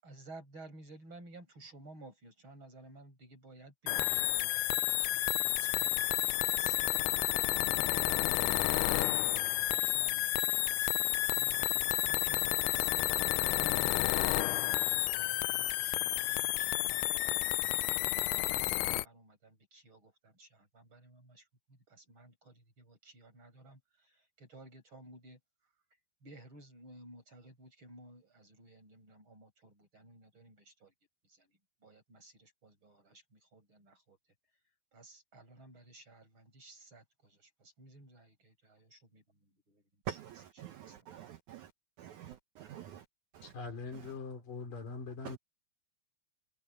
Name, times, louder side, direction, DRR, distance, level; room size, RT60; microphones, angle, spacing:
voice 1, 0.0-6.8 7.5-12.9 13.4-25.4 26.2-30.9 31.2-34.2 34.9-39.2 39.7-40.2 40.7-41.0, right 2 dB, 30° right, 8.7 m, -56 dB
sound 1, 3.9-19.1, left 17 dB, 90° left, 1.8 m, -31 dB
voice 2, 40.1-41.7 42.0-43.0 43.3-43.5 43.9-44.2 45.2-45.4, right 10 dB, 65° right, 2.1 m, -46 dB
voice 3, 43.4-45.4, left 4 dB, 60° left, 5.3 m, -42 dB
omnidirectional pair, 4.4 m